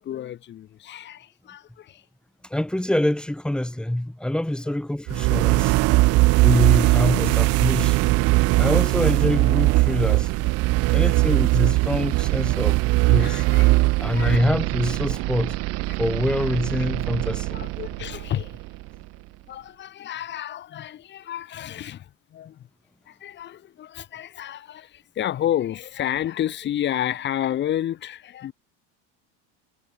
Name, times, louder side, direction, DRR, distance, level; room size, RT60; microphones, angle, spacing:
voice 1, 0.0-2.0 4.7-4.8 6.8-7.3 8.5-8.7 9.1-9.2 10.4-10.5 10.9-11.0 13.1-14.4 16.4-16.5 17.5-18.5 19.5-22.7 23.1-28.5, left 11 dB, 30° left, 5.0 m, -31 dB
voice 2, 2.5-5.7 6.3-8.0 8.6-10.3 10.9-12.8 13.1-13.4 14.0-15.6 16.0-17.6, left 1 dB, ahead, 3.6 m, -25 dB
sound 1, 5.1-19.0, right 22 dB, 40° right, 1.0 m, -20 dB
supercardioid pair, 160°, 35 cm